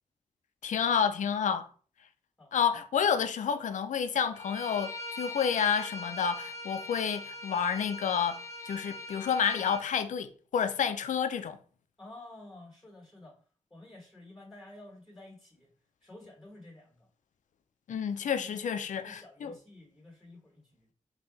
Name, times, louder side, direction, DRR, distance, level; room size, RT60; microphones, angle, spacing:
voice 1, 0.6-1.7 2.5-11.6 17.9-19.6, left 7 dB, 85° left, 0.4 m, -30 dB
Bowed string instrument, 4.3-9.8, left 1 dB, 25° left, 0.9 m, -41 dB
voice 2, 12.0-13.4 13.7-15.7 16.0-17.1 18.3-18.6 18.9-20.9, left 2 dB, ahead, 1.5 m, -51 dB
3.7 x 2.9 x 3.9 m
cardioid pair, 55°, 13 cm